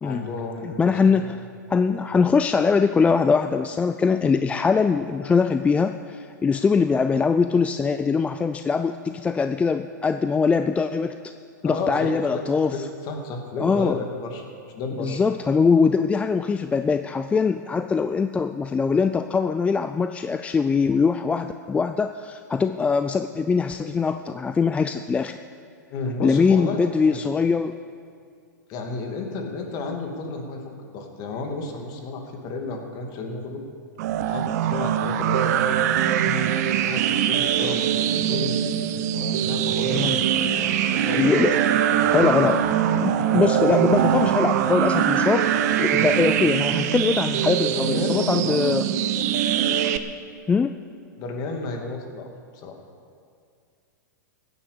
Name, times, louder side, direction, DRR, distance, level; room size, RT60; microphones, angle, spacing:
voice 1, 0.0-1.3 11.6-12.4 12.7-14.4 14.7-15.2 25.9-27.3 28.7-33.6 34.2-35.7 36.2-38.6 39.1-41.5 42.0-42.1 43.3-43.4 45.9-46.1 47.6-48.6 51.2-52.7, left 3 dB, 40° left, 3 dB, 2.6 m, -32 dB
voice 2, 0.6-1.4 1.7-11.2 11.6-12.8 13.6-14.0 15.0-25.4 26.2-27.8 39.8-40.2 41.1-41.7 42.1-42.7 43.0-45.5 45.8-48.8 50.5-50.7, left 5 dB, 10° left, 9 dB, 0.4 m, -22 dB
sound 1, 34.0-50.0, right 9 dB, 55° right, 0.9 m, -22 dB
16.0 x 10.0 x 6.9 m, 2.3 s
hypercardioid pair, 120°, 10 cm